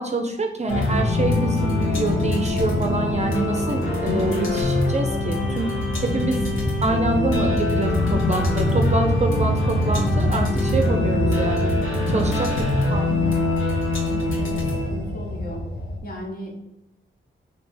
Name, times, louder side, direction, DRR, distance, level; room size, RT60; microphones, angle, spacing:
voice 1, 0.0-5.7 6.0-6.4 6.8-11.7 12.1-13.3, right 2 dB, 35° right, 4 dB, 0.5 m, -26 dB
sound 1, 0.7-16.0, left 2 dB, 85° left, 1.2 m, -23 dB
voice 2, 14.8-15.7 16.0-16.6, equal, 45° left, -1 dB, 1.1 m, -35 dB
3.2 x 2.9 x 4.4 m, 0.90 s
cardioid pair, 85°, 21 cm